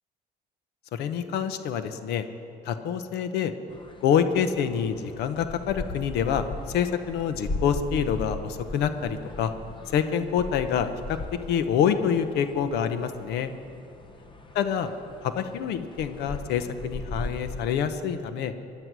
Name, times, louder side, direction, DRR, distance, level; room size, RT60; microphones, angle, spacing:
voice 1, 0.9-2.3 2.6-3.5 4.0-9.5 9.9-11.2 11.5-13.5 14.5-14.9 15.2-18.5, left 8 dB, 80° left, 10 dB, 0.9 m, -26 dB
sound 1, 3.7-17.7, left 2 dB, 30° left, 1.1 m, -39 dB
17.5 x 11.0 x 6.2 m, 2.6 s
cardioid pair, 110°, 17 cm